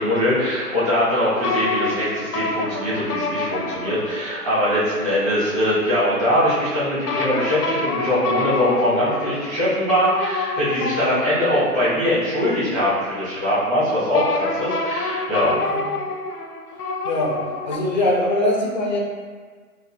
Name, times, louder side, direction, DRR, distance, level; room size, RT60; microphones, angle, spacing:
voice 1, 0.0-15.5, equal, 25° right, -12 dB, 1.5 m, -22 dB
sound 1, 1.3-4.8 7.1-12.8 14.1-17.8, left 3 dB, 85° left, 0.5 m, -27 dB
voice 2, 15.5-15.9 17.0-19.0, left 1 dB, 35° left, -2 dB, 0.4 m, -22 dB
4.1 x 2.5 x 2.5 m, 1.5 s
figure-of-eight pair, 130°, 45 cm